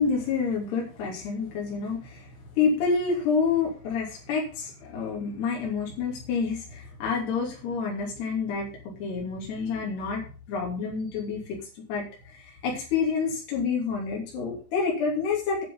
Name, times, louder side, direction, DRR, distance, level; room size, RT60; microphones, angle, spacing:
voice 1, 0.0-8.7 9.0-11.6 11.9-15.6, left 5 dB, 60° left, -2 dB, 4.9 m, -28 dB
10.5 x 7.7 x 5.5 m, 0.37 s
omnidirectional pair, 5.5 m